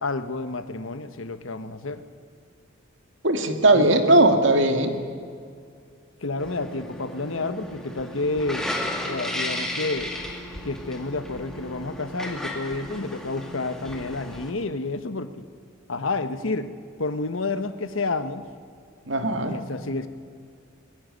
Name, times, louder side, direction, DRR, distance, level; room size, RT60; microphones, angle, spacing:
voice 1, 0.0-2.0 3.7-3.9 6.2-10.1 10.6-15.5 15.9-16.7 17.0-18.5 19.4-20.1, left 3 dB, 90° left, 11 dB, 1.2 m, -30 dB
voice 2, 3.2-5.0 19.1-19.6, right 2 dB, 70° right, 6 dB, 2.0 m, -19 dB
sound 1, 6.4-14.5, left 1 dB, 5° left, 2.1 m, -34 dB
21.0 x 15.5 x 9.5 m, 2.2 s
head